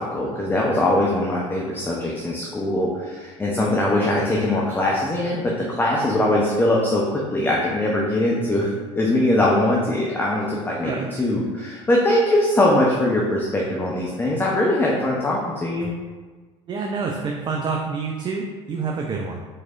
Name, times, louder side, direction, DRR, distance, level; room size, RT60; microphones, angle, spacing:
voice 1, 0.0-15.9, left 1 dB, 10° left, -3 dB, 0.7 m, -21 dB
voice 2, 10.8-11.1 16.7-19.4, right 4 dB, 30° right, 1 dB, 0.5 m, -27 dB
4.6 x 4.1 x 2.4 m, 1.4 s
hypercardioid pair, 70°, 16 cm